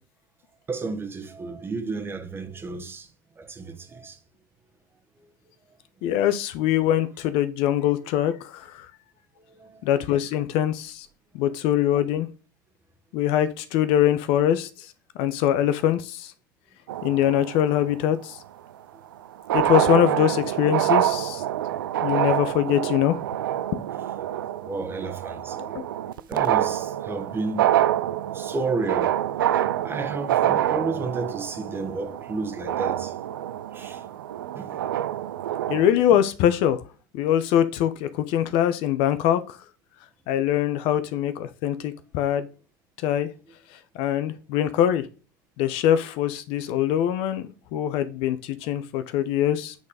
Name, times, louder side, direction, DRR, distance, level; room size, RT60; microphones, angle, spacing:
voice 1, 0.7-3.1 3.4-4.2 9.5-9.8 11.4-11.5 24.6-25.6 26.2-27.8 28.3-33.1 33.7-34.0 34.5-34.8, right 3 dB, 20° right, 1.4 m, -32 dB
voice 2, 6.0-8.9 9.8-11.1 11.3-12.3 13.1-14.7 15.2-16.3 17.0-18.4 19.5-21.4 22.0-23.2 25.7-25.8 35.7-36.8 37.1-39.6 40.3-42.5 43.0-43.3 44.0-45.0 45.6-49.7, left 11 dB, 60° left, 0.9 m, -23 dB
sound 1, 16.9-18.0 19.1-19.2 19.4-35.9, right 12 dB, 85° right, 0.5 m, -26 dB
8.5 x 4.1 x 5.0 m
hypercardioid pair, 100°, 11 cm